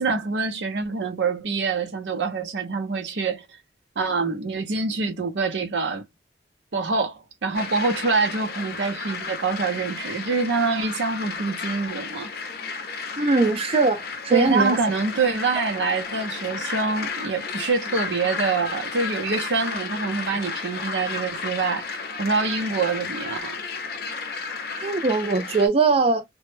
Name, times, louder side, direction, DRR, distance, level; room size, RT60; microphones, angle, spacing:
voice 1, 0.0-3.5 4.0-6.0 6.7-12.3 14.3-23.6, right 4 dB, 85° right, 0.6 m, -25 dB
sound 1, 7.5-25.7, left 4 dB, 60° left, 0.5 m, -33 dB
voice 2, 13.2-14.8 24.8-26.2, right 3 dB, 35° right, 0.4 m, -21 dB
2.1 x 2.0 x 3.0 m
head